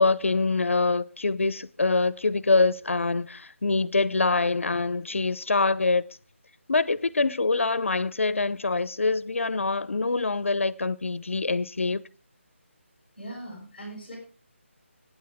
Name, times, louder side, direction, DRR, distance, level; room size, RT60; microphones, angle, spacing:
voice 1, 0.0-6.1 6.7-12.0, left 3 dB, 70° left, 0.8 m, -25 dB
voice 2, 13.2-14.2, right 1 dB, 5° left, 6.2 m, -40 dB
25.0 x 9.5 x 3.6 m
figure-of-eight pair, 180°, 7 cm